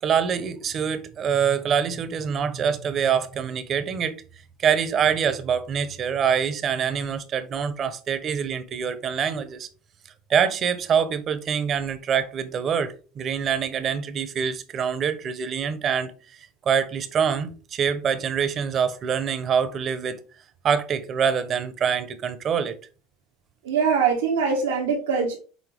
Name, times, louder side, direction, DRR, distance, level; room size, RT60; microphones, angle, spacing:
voice 1, 0.0-4.1 4.6-9.7 10.3-20.2 20.6-22.8, right 7 dB, 40° right, 0.9 m, -25 dB
voice 2, 23.6-25.4, right 5 dB, 90° right, 1.4 m, -22 dB
6.3 x 4.2 x 3.6 m
supercardioid pair, 100°, 0 cm